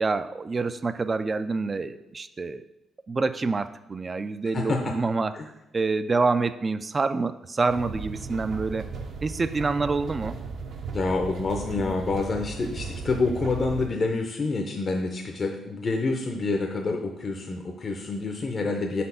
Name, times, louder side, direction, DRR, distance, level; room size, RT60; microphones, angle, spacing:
voice 1, 0.0-2.6 3.1-5.4 5.7-8.9 9.2-10.4, right 3 dB, 30° right, 11 dB, 0.3 m, -27 dB
voice 2, 4.5-4.9 5.3-5.4 10.9-19.0, left 3 dB, 40° left, 2 dB, 0.6 m, -27 dB
sound 1, 7.7-13.9, right 4 dB, 65° right, 0.8 m, -36 dB
4.7 x 4.2 x 5.6 m, 0.90 s
cardioid pair, 90°, 0 cm